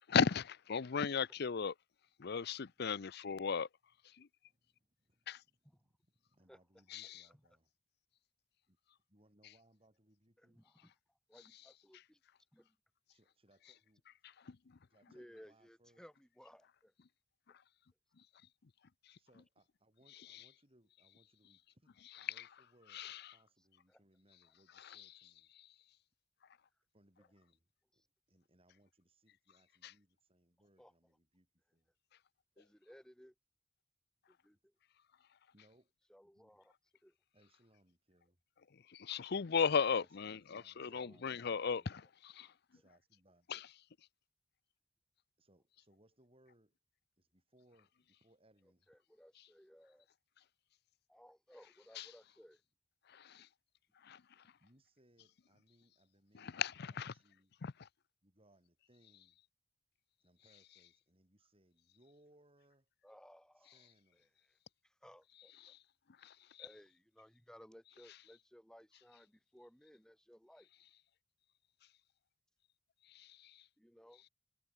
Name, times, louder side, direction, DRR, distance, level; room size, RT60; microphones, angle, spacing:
voice 1, 0.1-1.7 2.2-3.7 4.2-4.3 5.3-5.4 6.9-7.2 14.2-14.6 20.3-20.4 22.3-22.4 22.9-23.2 24.8-25.1 25.6-25.7 29.8-29.9 38.7-42.5 43.5-43.6 52.0-52.1 53.1-53.5 54.0-54.2 56.3-57.1 57.6-57.9 65.6-65.8 66.2-66.6 73.1-73.6, left 6 dB, 60° left, 0.6 m, -36 dB
voice 2, 4.4-7.7 8.7-10.6 13.1-14.0 14.9-16.1 19.2-25.5 26.9-31.9 34.5-34.6 35.5-35.9 36.3-36.5 37.3-38.4 39.7-42.0 42.7-43.5 45.4-46.8 47.2-48.9 54.6-57.5 58.2-59.4 60.2-62.9 63.5-64.4, right 1 dB, 30° right, 7.7 m, -71 dB
voice 3, 10.4-12.2 12.5-12.8 15.1-16.9 23.9-24.0 27.2-27.3 27.9-28.1 30.8-30.9 32.6-33.3 34.3-34.7 36.1-36.7 37.0-37.2 40.9-41.4 42.4-42.6 48.9-50.1 51.1-52.6 54.0-54.1 63.0-63.8 64.1-64.6 64.8-65.7 66.6-70.7 73.8-74.3, equal, 5° left, 5.5 m, -61 dB
head